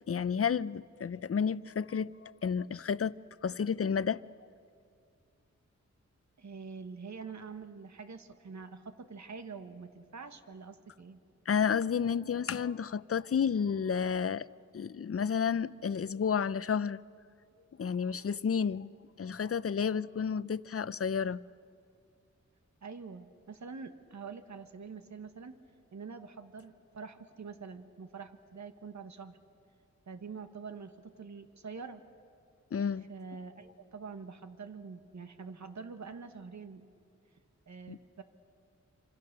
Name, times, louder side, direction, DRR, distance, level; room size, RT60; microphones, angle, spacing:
voice 1, 0.1-3.1 3.4-4.2 11.5-14.5 14.7-17.0 17.8-18.9 19.2-21.4 32.7-33.1 37.9-38.0, left 6 dB, 50° left, 0.6 m, -31 dB
voice 2, 6.4-11.2 22.8-25.5 25.9-29.4 30.1-32.0 33.1-36.9 37.7-38.2, right 5 dB, 70° right, 1.4 m, -45 dB
27.5 x 25.5 x 6.7 m
wide cardioid pair, 80°, 29 cm